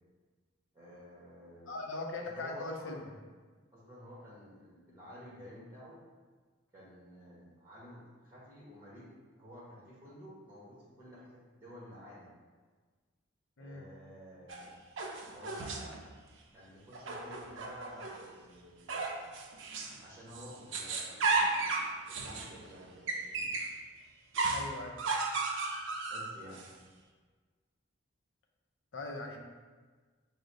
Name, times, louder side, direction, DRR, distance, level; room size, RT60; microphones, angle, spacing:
voice 1, 0.7-1.8 2.2-3.0 3.7-6.0 6.7-9.1 9.4-12.3 13.6-14.7 15.3-16.0 16.5-19.2 20.0-23.5 26.1-26.6, equal, 10° right, -7 dB, 0.9 m, -52 dB
voice 2, 1.7-3.0 13.6-13.9 24.5-25.0 28.9-29.4, left 2 dB, 70° left, 1 dB, 0.6 m, -40 dB
sound 1, 14.5-16.0 16.9-18.3 18.9-20.0 20.3-23.8 24.3-26.7, right 3 dB, 65° right, 0.4 m, -34 dB
4.9 x 2.0 x 3.9 m, 1.4 s
head